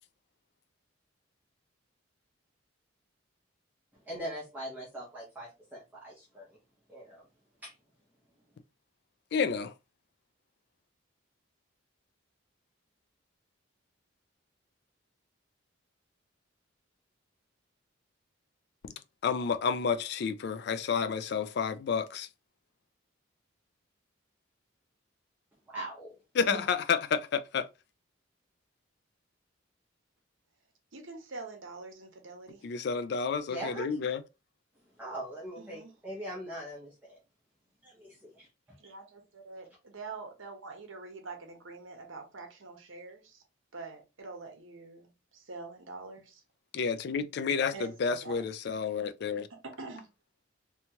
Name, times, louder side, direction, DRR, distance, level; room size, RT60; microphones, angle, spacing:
voice 1, 4.0-6.5 6.9-7.2 7.6-7.7 25.7-26.2 26.5-26.7 33.5-34.0 35.0-37.2 37.8-38.5, right 1 dB, 10° right, 0.7 m, -41 dB
voice 2, 9.3-9.7 19.2-22.3 26.3-27.7 32.6-34.2 46.7-49.5, left 6 dB, 55° left, 0.3 m, -30 dB
voice 3, 30.9-32.6 35.6-35.9 38.8-43.4 43.7-46.4 47.7-48.4 49.5-50.1, right 3 dB, 75° right, 0.9 m, -45 dB
2.8 x 2.3 x 2.8 m
head